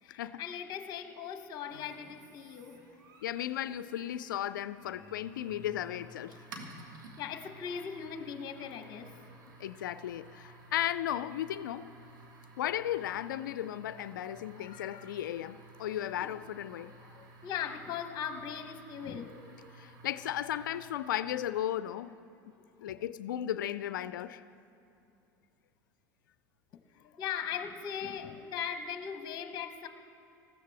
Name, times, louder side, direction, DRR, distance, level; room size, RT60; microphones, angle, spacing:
voice 1, 0.0-2.8 6.8-6.9 7.2-9.1 14.6-15.1 16.0-16.3 16.8-19.4 22.6-22.9 26.9-29.9, left 8 dB, 45° left, 0.9 m, -40 dB
sound 1, 1.7-21.3, right 2 dB, 80° right, 1.9 m, -54 dB
voice 2, 3.2-6.4 9.6-11.9 12.6-16.9 19.8-22.2 22.5-22.6 22.8-24.4, left 11 dB, 85° left, 0.4 m, -35 dB
20.0 x 14.5 x 3.4 m
hypercardioid pair, 90°, 10 cm